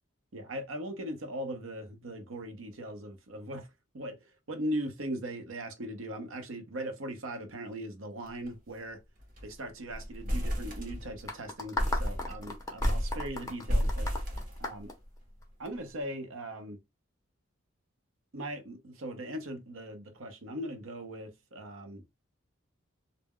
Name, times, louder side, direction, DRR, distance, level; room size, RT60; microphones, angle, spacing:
voice 1, 0.3-3.7 3.9-4.2 4.5-9.0 9.4-14.1 14.6-14.9 15.6-16.8 18.3-22.0, right 1 dB, 75° right, 0.7 m, -39 dB
sound 1, 8.3-8.5 8.8-8.9 9.2-9.6 9.9-11.3 11.8-15.1, equal, 40° right, 0.8 m, -32 dB
sound 2, 11.3-15.7, left 2 dB, 15° left, 0.5 m, -37 dB
2.2 x 2.0 x 3.5 m
head